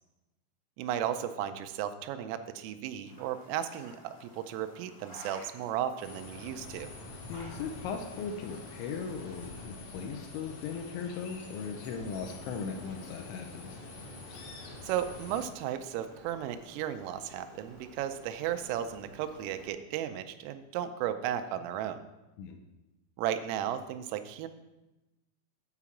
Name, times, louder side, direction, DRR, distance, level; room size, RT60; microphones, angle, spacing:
voice 1, 0.8-6.9 14.8-22.0 23.2-24.5, right 10 dB, 90° right, 9 dB, 3.2 m, -35 dB
sound 1, 3.0-9.6, equal, 30° left, 0.7 m, -54 dB
sound 2, 6.0-15.5, left 3 dB, 65° left, 2.2 m, -46 dB
voice 2, 7.3-13.8 22.4-22.6, left 6 dB, 80° left, 4 dB, 2.9 m, -38 dB
Rain, 11.8-19.7, right 1 dB, 60° right, 0.4 m, -54 dB
8.3 x 4.9 x 7.1 m, 1.0 s
omnidirectional pair, 5.8 m